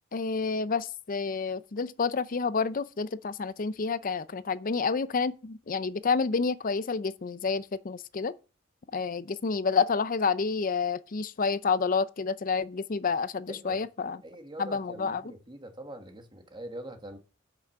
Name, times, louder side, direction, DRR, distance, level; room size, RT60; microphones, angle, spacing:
voice 1, 0.1-8.3 8.9-14.2 14.6-15.2, left 5 dB, 40° left, 0.5 m, -29 dB
voice 2, 13.5-17.2, right 1 dB, 20° right, 1.5 m, -44 dB
8.2 x 5.9 x 6.5 m
head